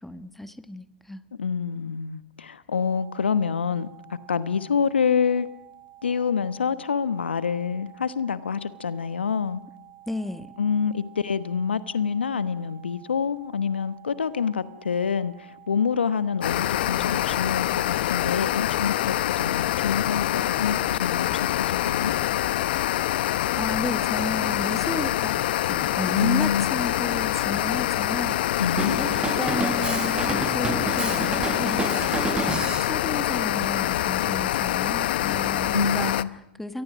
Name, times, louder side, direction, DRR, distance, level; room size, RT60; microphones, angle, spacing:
voice 1, 0.0-1.3 10.1-10.6 23.5-28.4 28.9-31.9 32.8-36.8, left 1 dB, 5° left, 10 dB, 1.4 m, -33 dB
voice 2, 1.4-3.9 4.3-5.5 6.0-9.6 10.6-22.1 26.1-26.7 28.6-29.0 35.7-36.3, left 6 dB, 85° left, 13 dB, 1.1 m, -27 dB
sound 1, 2.7-18.1, right 14 dB, 65° right, 4.7 m, -50 dB
sound 2, 16.4-36.2, left 14 dB, 65° left, 0.8 m, -25 dB
Drum kit, 28.8-32.9, right 5 dB, 15° right, 1.1 m, -30 dB
28.5 x 23.0 x 6.3 m, 0.79 s
hypercardioid pair, 100°, 6 cm